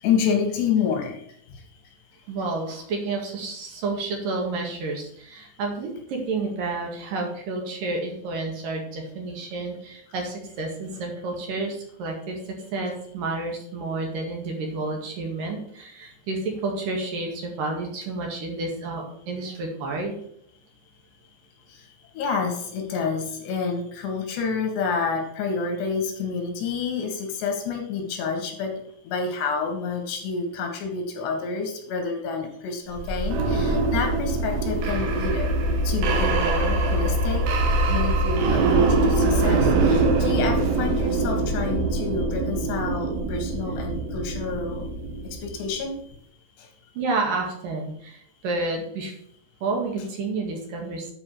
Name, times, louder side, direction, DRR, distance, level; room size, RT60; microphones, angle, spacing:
voice 1, 0.0-1.2 1.5-1.6 21.7-21.8 22.1-35.5 35.8-37.5 37.9-44.9 45.4-46.0, left 5 dB, 85° left, 5 dB, 3.9 m, -28 dB
voice 2, 2.3-20.1 46.9-49.1 49.6-51.1, right 3 dB, 60° right, 1 dB, 3.2 m, -30 dB
sound 1, 32.9-45.7, right 2 dB, 85° right, 3.5 m, -23 dB
10.0 x 4.8 x 6.2 m, 0.68 s
omnidirectional pair, 4.7 m